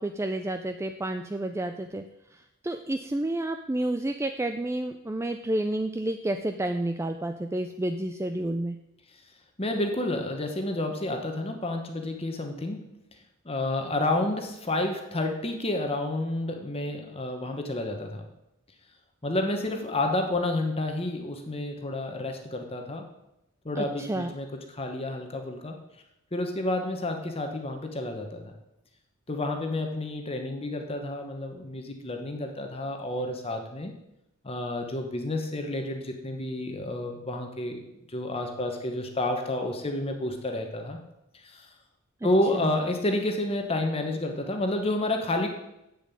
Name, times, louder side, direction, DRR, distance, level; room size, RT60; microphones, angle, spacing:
voice 1, 0.0-2.0 2.3-8.8 23.8-24.3 42.2-42.3 42.5-42.8, right 1 dB, 10° right, 7 dB, 0.4 m, -30 dB
voice 2, 9.6-12.9 13.4-18.2 19.2-23.1 23.6-25.8 26.3-28.5 29.3-33.9 34.4-37.8 38.1-41.0 41.3-41.7 42.2-45.5, left 1 dB, 25° left, 4 dB, 1.1 m, -30 dB
7.5 x 7.1 x 8.4 m, 0.89 s
head